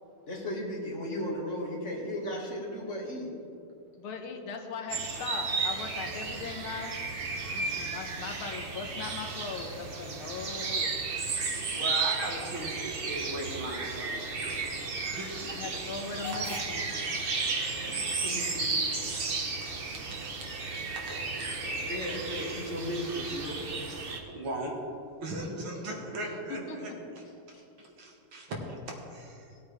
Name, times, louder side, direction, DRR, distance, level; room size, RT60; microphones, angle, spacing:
voice 1, 0.3-3.3 17.6-18.8 21.8-23.7 26.0-26.9 27.5-27.6, equal, 35° left, -3 dB, 2.2 m, -36 dB
voice 2, 4.0-6.9 7.5-10.9 15.5-17.2 26.5-26.9, left 5 dB, 80° left, 4 dB, 1.9 m, -39 dB
sound 1, 4.9-24.2, right 4 dB, 50° right, 0.7 m, -34 dB
Hiss / Train / Alarm, 11.5-21.1, left 2 dB, 20° right, 2.4 m, -50 dB
voice 3, 11.7-14.1 15.1-15.8 16.3-16.5 17.1-17.4 20.0-20.3 20.9-21.1 24.3-24.8 25.2-26.9 28.0-28.8 29.1-29.5, right 1 dB, 70° right, -1 dB, 2.4 m, -38 dB
17.0 x 8.7 x 3.4 m, 2.6 s
omnidirectional pair, 2.3 m